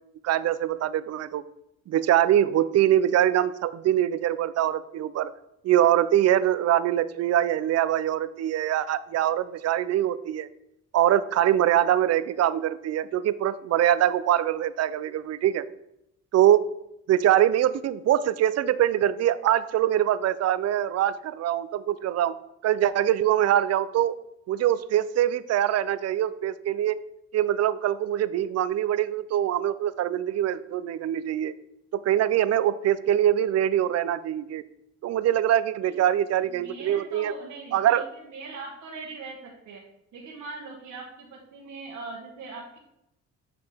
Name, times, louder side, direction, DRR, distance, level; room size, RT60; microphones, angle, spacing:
voice 1, 0.2-1.4 1.9-5.3 5.6-10.5 10.9-15.6 16.3-16.6 17.1-22.4 22.6-24.2 24.5-27.0 27.3-31.5 31.9-34.6 35.0-37.3 37.7-38.1, right 11 dB, 55° right, 16 dB, 0.5 m, -23 dB
voice 2, 36.6-39.8 40.1-42.8, right 3 dB, 75° right, -3 dB, 1.2 m, -41 dB
8.6 x 4.9 x 3.4 m, 0.83 s
cardioid pair, 90°, 30 cm